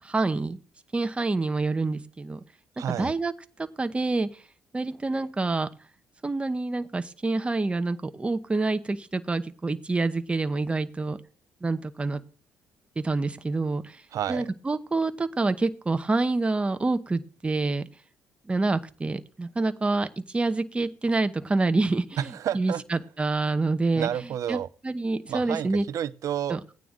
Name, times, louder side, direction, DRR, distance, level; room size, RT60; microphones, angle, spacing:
voice 1, 0.1-0.6 0.9-2.4 3.0-3.3 3.8-4.3 4.7-5.7 6.2-11.2 11.6-12.2 13.0-13.8 14.3-17.9 18.5-20.1 20.3-22.2 22.5-24.1 24.5-24.6 24.8-25.8 26.5-26.7, right 3 dB, 20° right, 0.9 m, -27 dB
voice 2, 2.8-3.1 14.1-14.5 22.2-22.8 23.9-24.7 25.3-26.6, right 10 dB, 65° right, 0.6 m, -30 dB
16.0 x 9.2 x 3.8 m
cardioid pair, 90°, 6 cm